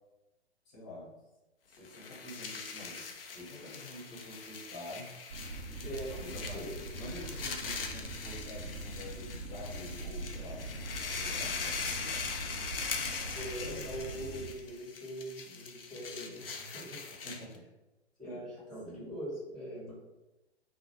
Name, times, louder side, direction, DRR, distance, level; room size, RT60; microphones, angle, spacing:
voice 1, 0.7-1.1 1.7-3.0 3.3-5.1 5.8-5.9 6.2-10.7 11.1-13.2 17.1-17.6 18.2-18.4 18.8-19.0, left 1 dB, 25° left, -5 dB, 1.2 m, -48 dB
sound 1, 1.8-17.6, left 5 dB, 55° left, 0.6 m, -41 dB
sound 2, 5.3-14.5, right 2 dB, 65° right, 0.7 m, -42 dB
voice 2, 5.8-6.2 6.5-6.7 13.3-17.0 18.2-19.9, equal, ahead, -9 dB, 1.3 m, -42 dB
2.9 x 2.5 x 4.3 m, 1.0 s
figure-of-eight pair, 115°, 34 cm